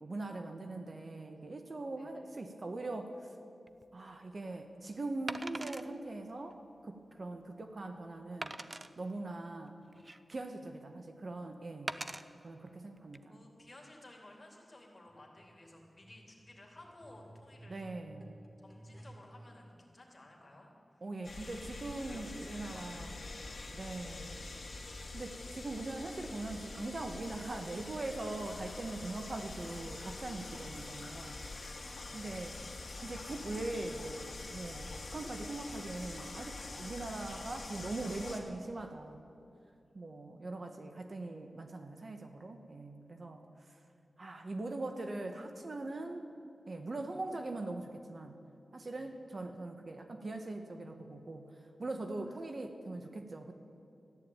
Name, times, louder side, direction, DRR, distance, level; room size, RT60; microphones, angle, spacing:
voice 1, 0.0-3.4 3.9-8.6 9.0-9.8 10.3-12.0 12.4-13.4 17.7-18.4 21.0-23.1 23.7-24.5 25.1-31.4 31.8-31.9 32.1-32.6 33.0-39.3 39.9-43.8 44.2-46.3 46.7-48.4 48.7-53.5, right 2 dB, 45° right, 6 dB, 1.1 m, -41 dB
Wood, 3.7-3.8 5.3-5.9 6.5-6.6 7.1-7.2 8.4-8.9 9.7-10.5 11.9-12.2 13.0-13.2, right 2 dB, 25° right, 0.5 m, -41 dB
voice 2, 12.0-12.6 13.3-17.8 18.6-21.0 21.4-23.7 30.9-32.8 39.8-40.6 49.0-49.1 52.0-52.4, left 1 dB, 30° left, -1 dB, 3.2 m, -57 dB
sound 1, 15.1-19.5 20.3-20.4, right 1 dB, 10° right, 2.1 m, -56 dB
sound 2, 21.2-38.4, left 3 dB, 55° left, 2.2 m, -45 dB
14.0 x 11.0 x 8.8 m, 2.7 s
wide cardioid pair, 110°, 0 cm